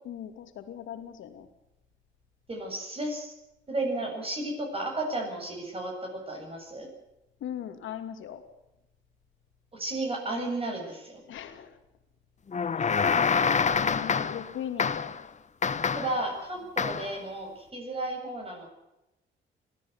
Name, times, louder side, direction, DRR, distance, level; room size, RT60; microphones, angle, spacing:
voice 1, 0.0-1.5 7.4-8.4 11.3-11.8 12.7-13.0 13.7-15.1 16.8-16.9, left 10 dB, 80° left, 7 dB, 2.8 m, -39 dB
voice 2, 2.5-3.3 3.7-5.9 6.3-6.9 9.7-11.2 15.9-18.7, right 2 dB, 30° right, 0 dB, 7.9 m, -33 dB
sound 1, 12.5-14.5 14.8-15.2 15.6-16.2 16.8-17.2, left 6 dB, 35° left, 1.2 m, -26 dB
21.0 x 14.5 x 9.6 m, 0.93 s
cardioid pair, 90°, 20 cm